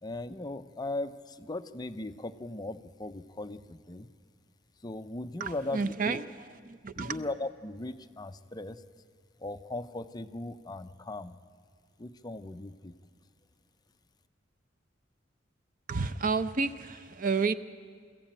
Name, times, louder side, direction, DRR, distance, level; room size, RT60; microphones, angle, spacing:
voice 1, 0.0-4.1 4.8-6.2 6.9-8.8 9.4-11.4 12.0-13.0, left 2 dB, 20° left, 9 dB, 0.6 m, -38 dB
voice 2, 5.4-7.2 15.9-17.5, right 4 dB, 45° right, 12 dB, 0.6 m, -31 dB
23.0 x 14.0 x 8.9 m, 2.2 s
head